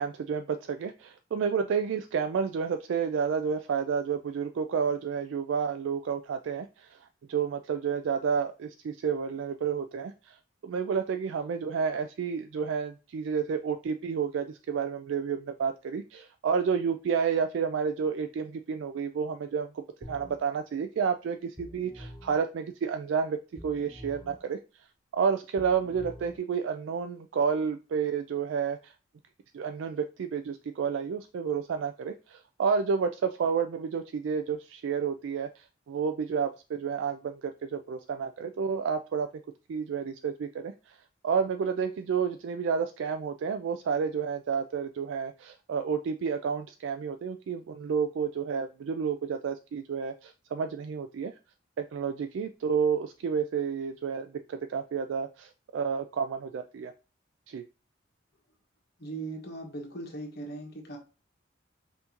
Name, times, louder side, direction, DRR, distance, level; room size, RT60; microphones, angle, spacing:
voice 1, 0.0-7.0 7.3-10.4 10.6-19.7 20.1-23.4 23.6-24.6 25.1-28.9 29.5-39.3 39.7-41.0 41.2-51.3 51.8-56.9 57.5-57.6, right 6 dB, 75° right, 7 dB, 0.3 m, -30 dB
sound 1, 20.0-20.4 21.6-22.4 23.6-24.4 25.6-26.4, equal, 5° left, 0.5 m, -46 dB
voice 2, 59.0-61.0, right 2 dB, 55° left, 1 dB, 1.2 m, -39 dB
5.6 x 2.6 x 2.9 m, 0.31 s
head